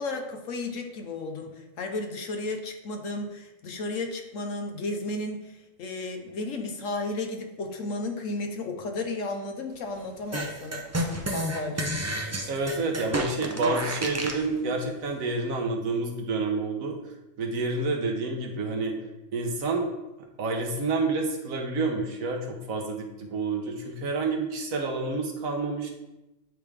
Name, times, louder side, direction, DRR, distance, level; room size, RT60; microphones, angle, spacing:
voice 1, 0.0-12.0, left 2 dB, 70° left, 4 dB, 1.2 m, -33 dB
sound 1, 10.3-14.4, right 1 dB, 25° right, 0.3 m, -30 dB
voice 2, 12.5-17.0 17.4-19.0 19.3-19.9 20.4-25.9, right 3 dB, 85° right, 2 dB, 1.4 m, -29 dB
9.2 x 3.5 x 3.3 m, 0.98 s
omnidirectional pair, 1.4 m